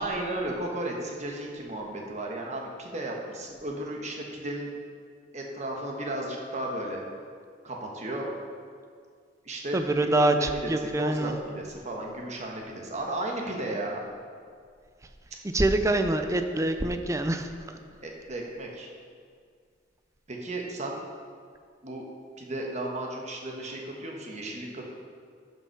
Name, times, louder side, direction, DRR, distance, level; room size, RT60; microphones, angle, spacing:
voice 1, 0.0-4.7 5.3-7.0 7.6-8.3 9.4-14.0 18.0-18.9 20.3-21.0 21.8-22.0 22.4-24.8, right 1 dB, 40° right, 0 dB, 1.3 m, -34 dB
voice 2, 9.7-11.3 15.5-17.8, right 2 dB, 15° right, 7 dB, 0.5 m, -25 dB
12.0 x 5.6 x 4.6 m, 2.1 s
head